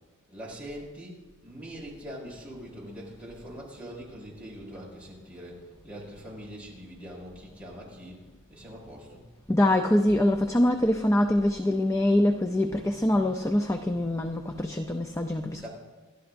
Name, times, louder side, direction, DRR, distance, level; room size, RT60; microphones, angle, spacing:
voice 1, 0.3-8.2 8.5-9.2 15.5-15.7, equal, 5° right, -5 dB, 5.5 m, -43 dB
voice 2, 9.5-15.7, left 1 dB, 15° left, 5 dB, 0.5 m, -24 dB
29.5 x 12.5 x 2.6 m, 1.4 s
head